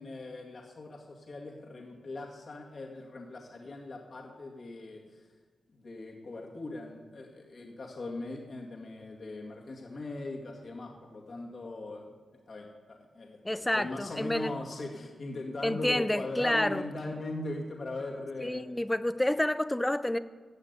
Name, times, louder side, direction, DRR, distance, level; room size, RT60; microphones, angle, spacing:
voice 1, 0.0-5.3 5.7-12.2 12.5-18.7, left 2 dB, 55° left, -1 dB, 2.3 m, -40 dB
voice 2, 13.4-14.5 15.6-16.8 18.4-20.2, left 1 dB, 10° left, 13 dB, 0.6 m, -29 dB
14.5 x 7.4 x 8.2 m, 1.5 s
cardioid pair, 65°, 0 cm